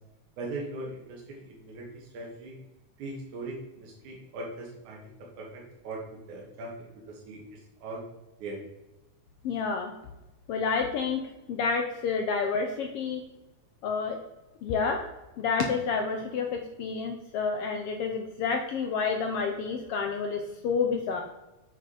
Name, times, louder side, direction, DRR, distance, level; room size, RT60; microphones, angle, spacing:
voice 1, 0.4-2.5 3.0-8.0 8.4-8.6, right 2 dB, 80° right, -3 dB, 2.8 m, -40 dB
voice 2, 9.4-9.9 10.5-11.2 11.5-13.2 13.8-14.2 14.6-15.0 15.4-21.2, left 5 dB, 85° left, 3 dB, 1.3 m, -29 dB
7.7 x 4.3 x 4.8 m, 1.0 s
omnidirectional pair, 3.5 m